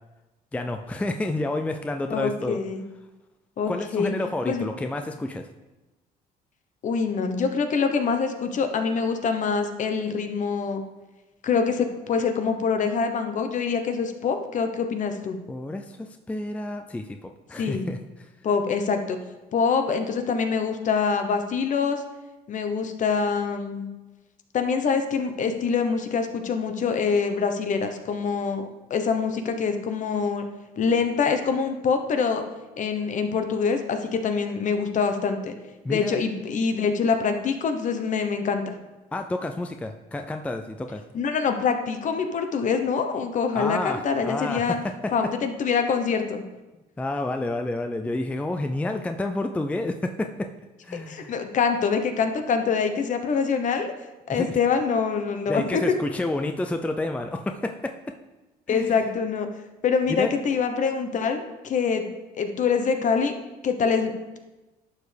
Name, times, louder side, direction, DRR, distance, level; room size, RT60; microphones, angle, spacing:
voice 1, 0.5-2.6 3.7-5.5 15.5-18.0 35.8-36.2 39.1-41.0 43.5-45.1 47.0-50.5 50.8-51.3 54.3-54.6 55.5-57.9 58.7-59.1 60.1-60.3, left 2 dB, 10° left, 6 dB, 0.4 m, -29 dB
voice 2, 2.1-2.8 3.6-4.1 4.5-4.6 6.8-10.8 11.4-15.4 17.6-17.9 18.4-19.2 19.5-22.0 22.5-23.9 24.5-30.5 30.8-32.4 32.8-35.5 35.9-38.8 41.1-44.8 45.1-46.4 51.1-53.9 54.3-55.8 58.7-59.5 59.8-62.1 62.4-63.3 63.6-64.4, left 5 dB, 45° left, 7 dB, 1.0 m, -25 dB
11.5 x 6.4 x 3.4 m, 1.1 s
cardioid pair, 110°, 17 cm